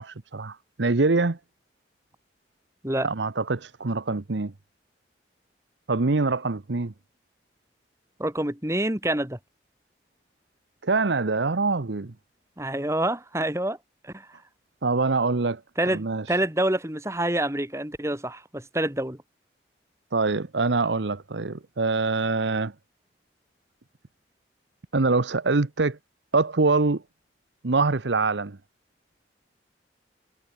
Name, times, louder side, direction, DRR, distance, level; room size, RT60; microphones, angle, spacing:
voice 1, 0.0-1.4 3.0-4.5 5.9-6.9 10.8-12.1 14.8-15.6 15.9-16.4 20.1-22.7 24.9-26.0 26.3-27.0 27.6-28.6, right 3 dB, 80° right, 0.9 m, -24 dB
voice 2, 8.2-9.4 12.6-13.8 14.0-14.3 15.8-19.2, right 1 dB, 15° right, 2.2 m, -27 dB
head